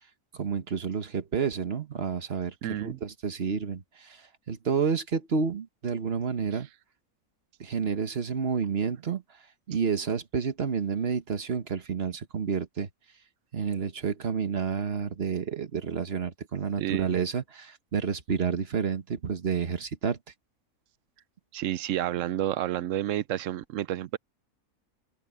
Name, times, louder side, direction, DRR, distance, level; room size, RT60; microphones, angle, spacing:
voice 1, 0.3-2.5 2.8-6.7 7.6-9.2 9.7-12.9 13.5-20.2, right 6 dB, 45° right, 1.4 m, -30 dB
voice 2, 2.6-3.0 16.8-17.2 21.5-24.2, right 12 dB, 70° right, 0.9 m, -30 dB
open air
omnidirectional pair, 1.5 m